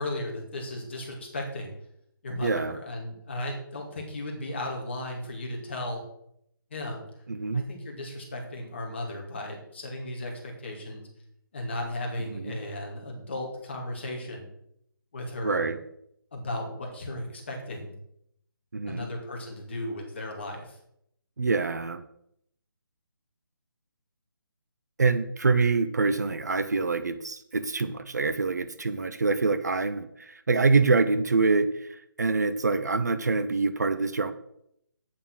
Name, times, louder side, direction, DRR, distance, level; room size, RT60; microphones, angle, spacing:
voice 1, 0.0-1.7 2.2-6.0 6.7-7.0 7.5-11.1 11.5-14.5 15.1-15.7 16.3-17.9 18.9-20.8, left 1 dB, 30° left, 0 dB, 2.3 m, -35 dB
voice 2, 2.4-2.8 7.3-7.7 12.3-12.6 15.4-15.8 18.7-19.1 21.4-22.0 25.0-34.3, right 4 dB, 50° right, 12 dB, 0.7 m, -25 dB
8.8 x 7.1 x 6.2 m, 0.74 s
hypercardioid pair, 180°, 12 cm